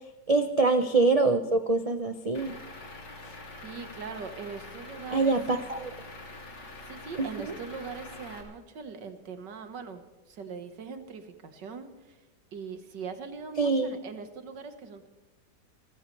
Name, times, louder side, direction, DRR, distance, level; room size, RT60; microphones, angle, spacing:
voice 1, 0.3-2.5 5.1-5.9 7.2-7.5 13.6-14.0, right 3 dB, 55° right, 8 dB, 0.3 m, -25 dB
Truck / Idling, 2.3-8.4, left 2 dB, 75° left, 3.3 m, -45 dB
voice 2, 3.6-5.4 6.9-12.2 12.5-15.1, right 5 dB, 80° right, 8 dB, 2.1 m, -41 dB
28.0 x 13.5 x 3.3 m, 1.2 s
omnidirectional pair, 1.9 m